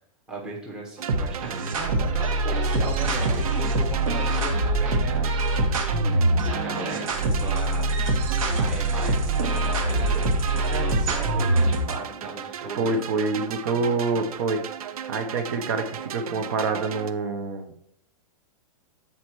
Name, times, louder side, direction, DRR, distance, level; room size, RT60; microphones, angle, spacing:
voice 1, 0.3-5.8 6.1-8.0 8.5-13.0, right 1 dB, 5° right, -4 dB, 0.8 m, -37 dB
sound 1, 1.0-17.1, right 9 dB, 90° right, 0.6 m, -36 dB
sound 2, 1.1-11.9, right 2 dB, 70° right, 1.4 m, -24 dB
voice 2, 12.7-14.6 15.1-17.7, right 3 dB, 40° right, 7 dB, 0.7 m, -26 dB
8.2 x 4.2 x 4.6 m, 0.70 s
supercardioid pair, 180°, 18 cm